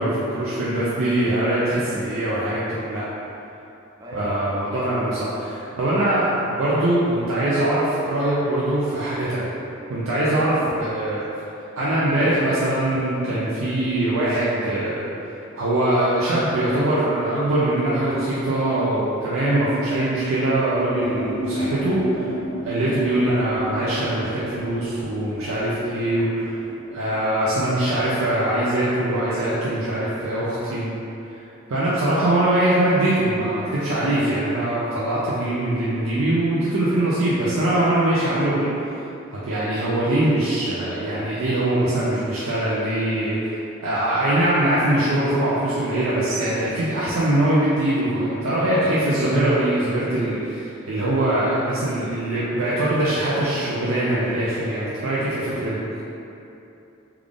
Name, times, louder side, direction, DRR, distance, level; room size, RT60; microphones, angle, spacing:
voice 1, 0.0-3.0 4.1-9.5 9.9-11.2 11.8-15.1 15.5-22.3 22.6-26.5 26.9-30.9 31.7-39.0 39.3-43.5 43.8-55.8, right 1 dB, 80° right, -9 dB, 0.5 m, -22 dB
voice 2, 4.0-4.6 5.6-5.7 48.6-49.6 55.3-56.1, equal, 20° right, -5 dB, 0.4 m, -40 dB
sound 1, 20.9-28.4, equal, 50° left, 0.4 m, -33 dB
3.4 x 2.4 x 3.5 m, 2.8 s
head